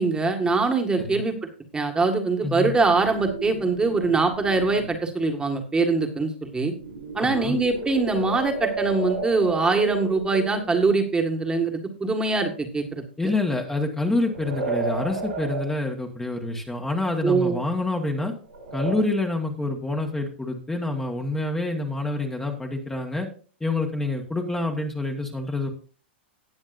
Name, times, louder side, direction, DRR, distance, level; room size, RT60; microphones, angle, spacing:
voice 1, 0.0-1.4 1.7-6.7 7.2-13.0 17.2-17.6, right 3 dB, 15° right, 4 dB, 1.8 m, -23 dB
voice 2, 2.4-2.7 7.2-7.6 13.2-18.3 18.7-23.3 23.6-25.7, left 2 dB, 10° left, 1 dB, 1.6 m, -27 dB
sound 1, 2.7-5.0 6.6-10.9 14.2-15.8 18.5-19.0, right 3 dB, 80° right, 5.5 m, -33 dB
18.5 x 7.1 x 2.6 m, 0.39 s
hypercardioid pair, 110°, 6 cm